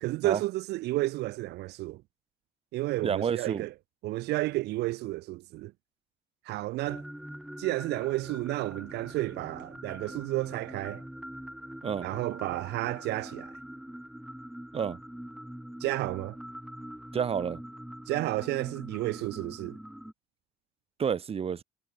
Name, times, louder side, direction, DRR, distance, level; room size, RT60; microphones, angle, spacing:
voice 1, 0.0-2.0 2.7-3.8 4.0-5.7 6.4-7.0 7.6-11.0 12.0-13.5 15.8-16.4 18.1-19.8, right 18 dB, 80° right, 0.7 m, -31 dB
voice 2, 3.0-3.6 11.8-12.1 14.7-15.0 17.1-17.6 21.0-21.6, right 7 dB, 35° right, 1.2 m, -29 dB
sound 1, 6.8-20.1, equal, ahead, 1.4 m, -44 dB
cardioid pair, 110°, 17 cm